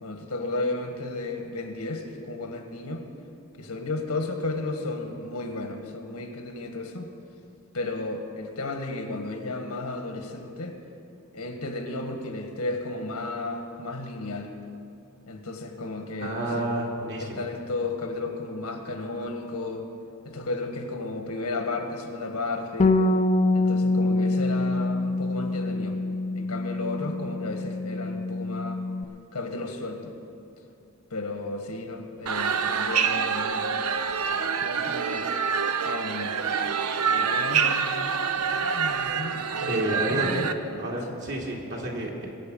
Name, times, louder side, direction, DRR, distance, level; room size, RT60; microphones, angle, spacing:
voice 1, 0.0-3.1 3.6-7.1 7.7-10.8 11.3-14.5 15.3-16.7 17.2-19.9 20.2-23.0 23.5-26.0 26.3-28.8 29.3-30.1 31.1-33.8 34.6-35.3 35.8-36.4 37.1-38.0 38.4-40.8, left 2 dB, 85° left, 4 dB, 1.7 m, -33 dB
voice 2, 16.2-17.4 39.7-40.5 40.8-42.3, right 1 dB, 55° right, -2 dB, 2.5 m, -30 dB
Bass guitar, 22.8-29.0, left 2 dB, 30° left, 0.5 m, -25 dB
sound 1, 32.3-40.5, right 6 dB, 85° right, 0.7 m, -26 dB
22.0 x 8.1 x 5.5 m, 2.7 s
head